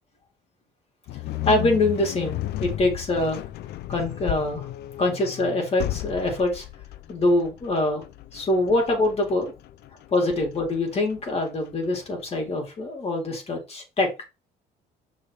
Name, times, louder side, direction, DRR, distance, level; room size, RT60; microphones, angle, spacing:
sound 1, 1.1-12.2, left 14 dB, 75° left, 0.6 m, -34 dB
voice 1, 1.5-3.4 3.9-4.7 5.0-6.6 7.1-8.0 8.3-9.5 10.1-14.1, left 2 dB, 35° left, 1 dB, 3.6 m, -24 dB
6.7 x 4.9 x 4.8 m, 0.27 s
cardioid pair, 110°, 17 cm